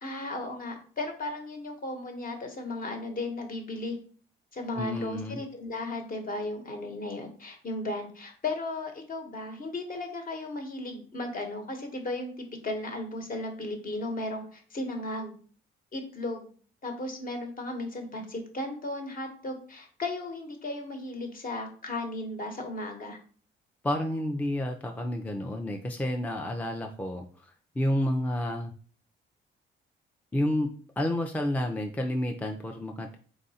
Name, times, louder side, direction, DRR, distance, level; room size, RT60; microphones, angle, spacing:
voice 1, 0.0-4.0 4.5-15.3 15.9-16.5 16.8-23.2, left 2 dB, 45° left, 4 dB, 1.1 m, -35 dB
voice 2, 4.8-5.4 23.8-27.2 27.8-28.7 30.3-33.2, left 1 dB, 10° left, 3 dB, 0.4 m, -30 dB
3.8 x 2.5 x 4.1 m, 0.44 s
cardioid pair, 90°, 20 cm